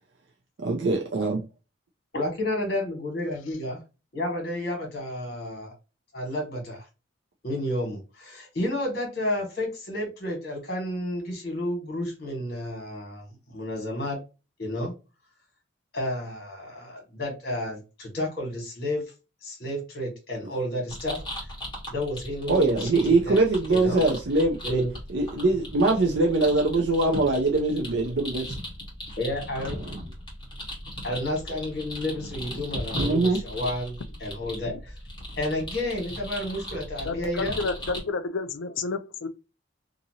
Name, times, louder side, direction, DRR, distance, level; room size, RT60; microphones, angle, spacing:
voice 1, 0.6-1.4 22.5-24.8 25.1-28.4 29.8-30.0 33.0-33.4, right 2 dB, 65° right, 0.5 m, -23 dB
voice 2, 2.1-3.8 4.1-5.7 6.1-6.8 7.4-14.2 14.6-14.9 15.9-19.0 19.4-21.2 21.9-23.4 23.7-24.0 24.6-24.9 29.2-29.8 31.0-34.9 35.4-37.5, left 1 dB, 50° left, 1.4 m, -31 dB
sound 1, 20.9-38.0, equal, 25° left, 1.3 m, -37 dB
voice 3, 37.0-39.3, left 4 dB, 75° left, 0.4 m, -30 dB
2.8 x 2.6 x 2.7 m
head